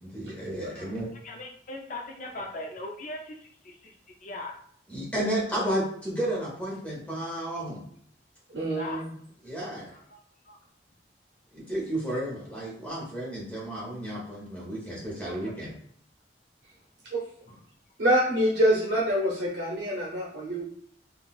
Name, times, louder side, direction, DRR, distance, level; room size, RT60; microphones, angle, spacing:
voice 1, 0.0-1.1 4.9-7.8 9.4-9.9 11.5-15.7, right 1 dB, 10° left, -5 dB, 1.1 m, -32 dB
voice 2, 1.2-4.0 4.2-4.6 8.7-9.0 9.9-10.2 10.5-10.6 15.2-15.5, left 2 dB, 45° left, 2 dB, 0.5 m, -40 dB
voice 3, 8.5-9.1 17.1-17.2 18.0-20.6, equal, 85° right, -4 dB, 0.7 m, -25 dB
3.8 x 2.4 x 2.4 m, 0.63 s
head